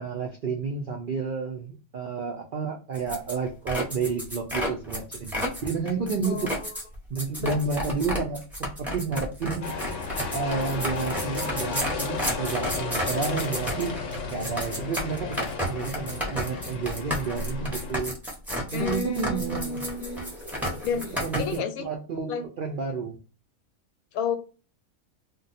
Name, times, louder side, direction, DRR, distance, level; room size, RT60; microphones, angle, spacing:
voice 1, 0.0-6.5 7.1-9.7 10.3-13.9 14.3-18.1 18.7-19.8 21.0-23.2, right 5 dB, 85° right, 0.4 m, -31 dB
sound 1, 3.0-21.6, equal, ahead, 0.6 m, -32 dB
voice 2, 6.2-6.7 7.3-7.6 18.7-20.2 20.8-21.9 22.3-22.4 24.1-24.4, left 4 dB, 80° left, 1.1 m, -31 dB
sound 2, 9.6-18.0, left 4 dB, 65° left, 0.8 m, -34 dB
2.5 x 2.2 x 4.0 m
omnidirectional pair, 1.5 m